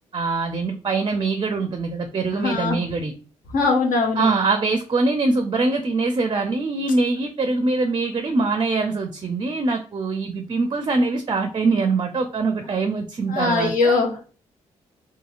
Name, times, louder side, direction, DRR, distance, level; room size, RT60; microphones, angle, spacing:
voice 1, 0.1-3.1 4.2-13.9, right 3 dB, 30° right, 6 dB, 0.4 m, -23 dB
voice 2, 2.3-2.8 3.5-4.3 13.3-14.1, left 3 dB, 65° left, 1 dB, 0.9 m, -21 dB
2.7 x 2.6 x 2.4 m, 0.38 s
hypercardioid pair, 45°, 15 cm